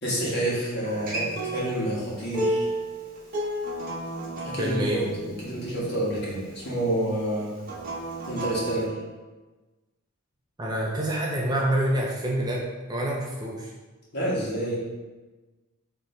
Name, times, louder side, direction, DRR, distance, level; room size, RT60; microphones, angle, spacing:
voice 1, 0.0-2.7 4.4-7.5 8.3-8.9 14.1-14.8, right 1 dB, 50° left, -6 dB, 1.5 m, -28 dB
Acoustic guitar, 0.9-6.1 7.6-8.9, right 1 dB, 40° right, 1.1 m, -32 dB
voice 2, 4.6-5.1 10.6-12.6 12.9-13.7, right 1 dB, 20° right, -2 dB, 0.5 m, -27 dB
4.5 x 3.0 x 3.8 m, 1.2 s
head